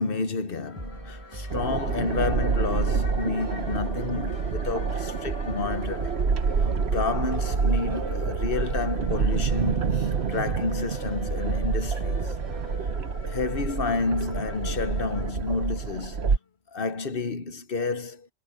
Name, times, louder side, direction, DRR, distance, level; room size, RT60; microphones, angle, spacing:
voice 1, 0.0-6.1 6.8-12.3 13.2-16.2 16.7-18.3, left 4 dB, 50° left, 1.3 m, -30 dB
sound 1, 0.6-15.9, left 4 dB, 90° left, 2.1 m, -44 dB
sound 2, 0.8-12.8, right 2 dB, 25° right, 1.8 m, -40 dB
sound 3, 1.5-16.4, right 5 dB, 60° right, 1.4 m, -27 dB
omnidirectional pair, 1.3 m